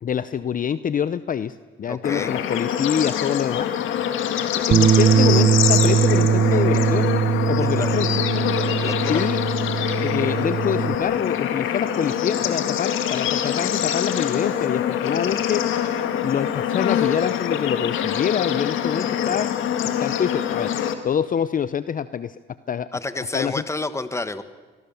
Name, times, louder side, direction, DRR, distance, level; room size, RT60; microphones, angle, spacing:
voice 1, 0.0-3.7 4.7-7.1 7.5-8.1 9.1-9.4 10.0-15.6 16.2-19.5 19.8-20.7 21.0-22.4 22.7-22.9 23.3-23.6, left 8 dB, 45° left, 15 dB, 0.6 m, -25 dB
voice 2, 1.9-2.3 7.6-8.2 8.8-9.2 22.9-24.4, left 2 dB, 15° left, 12 dB, 1.4 m, -30 dB
Bird / Insect / Frog, 2.0-20.9, left 9 dB, 85° left, 2.0 m, -24 dB
Bass guitar, 4.7-11.0, right 8 dB, 45° right, 0.7 m, -20 dB
25.5 x 21.5 x 7.1 m, 1.4 s
cardioid pair, 90°, 20 cm